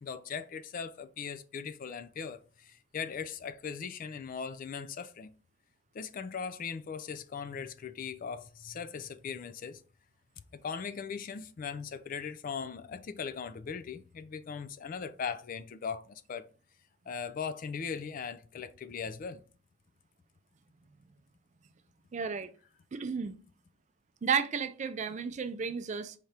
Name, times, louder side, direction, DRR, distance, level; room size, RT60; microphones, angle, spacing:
voice 1, 0.0-5.3 5.9-9.8 10.5-16.5 17.1-19.4, left 6 dB, 40° left, 0.3 m, -39 dB
voice 2, 22.1-22.5 22.9-23.4 24.2-26.1, right 6 dB, 35° right, 0.4 m, -32 dB
4.8 x 3.3 x 2.8 m
head